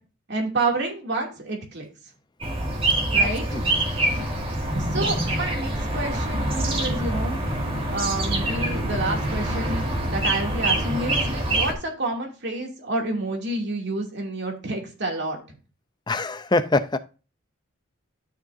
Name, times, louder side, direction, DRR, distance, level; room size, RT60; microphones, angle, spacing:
voice 1, 0.3-1.9 3.1-3.6 4.7-7.4 7.9-15.4, right 2 dB, 55° right, 2.7 m, -29 dB
sound 1, 2.4-11.7, right 1 dB, 25° right, 2.2 m, -25 dB
voice 2, 3.2-3.6 16.1-17.0, left 2 dB, 20° left, 0.6 m, -24 dB
sound 2, 7.4-11.3, right 1 dB, 55° left, 2.7 m, -41 dB
12.5 x 6.5 x 2.7 m
head